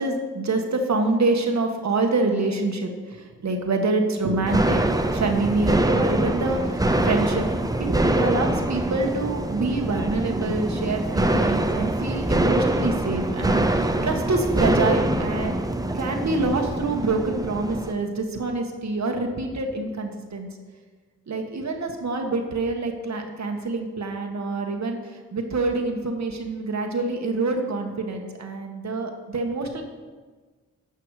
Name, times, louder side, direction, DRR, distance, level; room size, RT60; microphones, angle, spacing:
voice 1, 0.0-4.9 5.1-7.5 7.8-15.6 15.9-20.5 21.3-29.8, right 3 dB, 50° right, 3 dB, 1.5 m, -26 dB
sound 1, 4.5-17.9, right 1 dB, 10° right, 0.8 m, -24 dB
10.5 x 5.8 x 4.9 m, 1.4 s
supercardioid pair, 40°, 35 cm